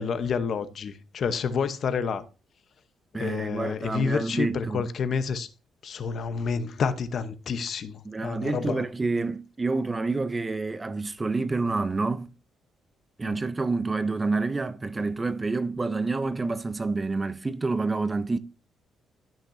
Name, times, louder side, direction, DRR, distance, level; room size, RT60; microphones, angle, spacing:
voice 1, 0.0-2.3 3.1-5.5 5.8-8.9 13.2-13.4, left 5 dB, 50° left, 0.9 m, -29 dB
voice 2, 3.1-4.9 8.0-12.3 13.2-18.4, right 3 dB, 20° right, 0.5 m, -28 dB
13.0 x 5.9 x 2.7 m
cardioid pair, 125°, 0 cm